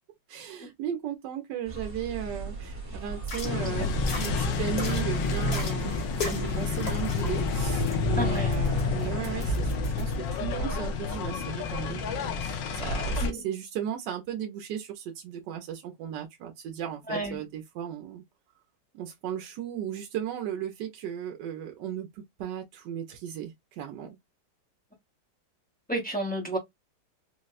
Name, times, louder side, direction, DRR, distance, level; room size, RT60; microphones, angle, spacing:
voice 1, 0.3-3.9 4.2-18.2 18.9-24.2, right 9 dB, 70° right, 1.1 m, -36 dB
sound 1, 1.6-9.5, right 3 dB, 20° right, 0.9 m, -38 dB
sound 2, 3.2-10.1, left 3 dB, 45° left, 1.4 m, -39 dB
sound 3, 3.4-13.3, left 4 dB, 75° left, 1.3 m, -29 dB
voice 2, 8.2-8.5 13.2-13.4 17.1-17.4 25.9-26.6, right 1 dB, 10° left, 0.6 m, -31 dB
4.1 x 2.1 x 2.3 m
omnidirectional pair, 2.2 m